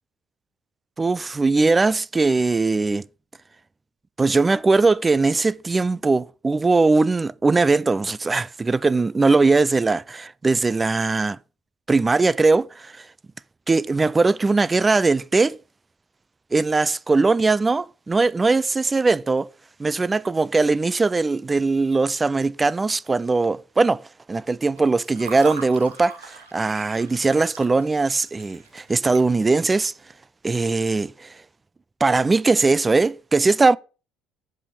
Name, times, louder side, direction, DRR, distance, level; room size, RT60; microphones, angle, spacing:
voice 1, 1.0-3.0 4.2-11.4 11.9-13.1 13.7-15.6 16.5-19.5 19.8-29.9 30.4-31.4 32.0-33.8, right 3 dB, 20° right, 0.4 m, -20 dB
Water / Fill (with liquid), 24.6-29.7, right 5 dB, 80° right, 1.3 m, -41 dB
8.3 x 7.1 x 6.1 m
figure-of-eight pair, 55°, 0 cm